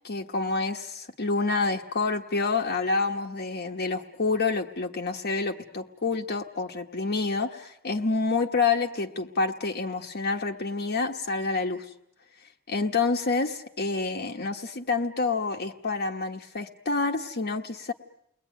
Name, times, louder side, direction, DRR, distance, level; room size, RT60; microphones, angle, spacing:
voice 1, 0.0-11.9 12.7-17.9, left 4 dB, 50° left, 3 dB, 1.2 m, -28 dB
30.0 x 21.0 x 9.3 m, 0.78 s
head